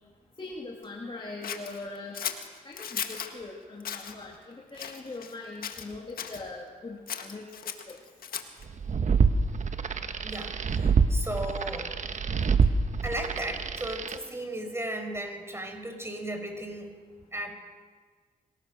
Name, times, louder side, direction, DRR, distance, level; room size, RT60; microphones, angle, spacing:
voice 1, 0.4-2.2 2.6-8.0, left 3 dB, 35° left, -2 dB, 3.1 m, -41 dB
Scissors, 1.4-3.3 3.8-4.1 4.7-5.4 5.6-6.4 7.1-8.6, left 8 dB, 75° left, 1.7 m, -36 dB
sound 1, 8.7-14.2, right 5 dB, 55° right, 1.3 m, -26 dB
voice 2, 10.2-11.9 13.0-16.9 17.3-17.5, right 1 dB, 15° right, 4 dB, 5.6 m, -35 dB
25.5 x 18.5 x 6.5 m, 1.5 s
cardioid pair, 60°, 15 cm